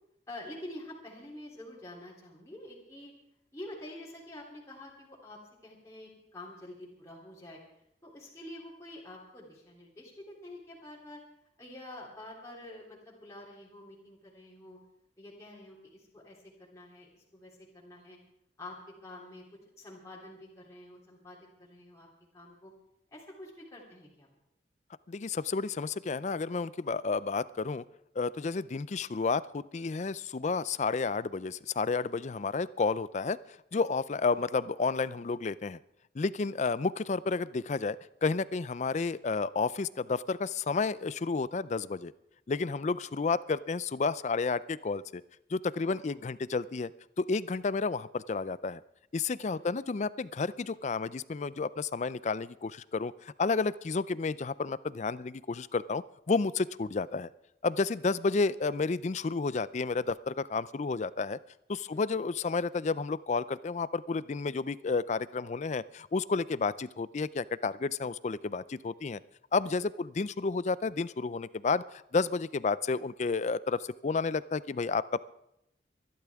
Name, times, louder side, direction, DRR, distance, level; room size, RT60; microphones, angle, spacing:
voice 1, 0.3-3.1 3.5-7.6 8.0-11.2 11.6-14.8 15.2-18.2 18.6-18.8 19.0-19.4 19.8-22.1 22.3-22.7 23.1-24.3 34.3-34.4 45.8-46.2 49.5-49.7 61.9-62.0, left 1 dB, 20° left, -5 dB, 3.2 m, -47 dB
voice 2, 25.1-27.8 28.2-33.4 33.7-35.8 36.1-42.1 42.5-45.2 45.5-46.9 47.2-48.8 49.1-57.3 57.6-61.4 61.7-69.2 69.5-75.0, left 4 dB, 40° left, 18 dB, 0.4 m, -31 dB
24.0 x 12.0 x 3.5 m, 0.81 s
head